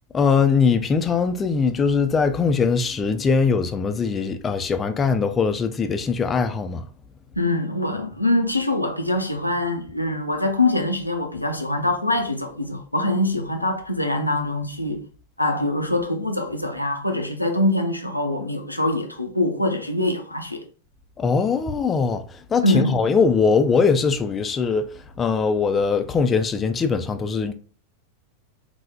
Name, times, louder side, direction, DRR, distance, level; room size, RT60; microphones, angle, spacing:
voice 1, 0.1-6.8 21.2-22.2 22.5-24.9 25.2-27.5, left 5 dB, 20° left, 0.3 m, -21 dB
voice 2, 7.4-15.0 15.4-20.6 22.6-23.0, left 2 dB, 85° left, 0.5 m, -24 dB
4.3 x 2.0 x 2.3 m
figure-of-eight pair, 90°, 0 cm